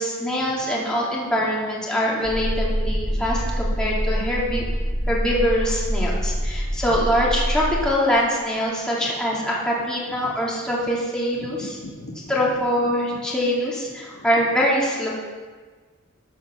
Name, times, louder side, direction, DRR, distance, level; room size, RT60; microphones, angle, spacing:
voice 1, 0.0-4.6 5.1-11.6 12.3-15.1, equal, 5° left, -6 dB, 2.6 m, -23 dB
sound 1, 2.2-7.9, equal, 15° right, 4.0 m, -25 dB
voice 2, 2.9-3.6 5.0-5.1 6.0-7.0 9.0-9.4 10.1-10.3 11.4-13.2 14.1-14.5, left 1 dB, 75° left, -2 dB, 2.0 m, -42 dB
12.5 x 5.7 x 6.9 m, 1.4 s
head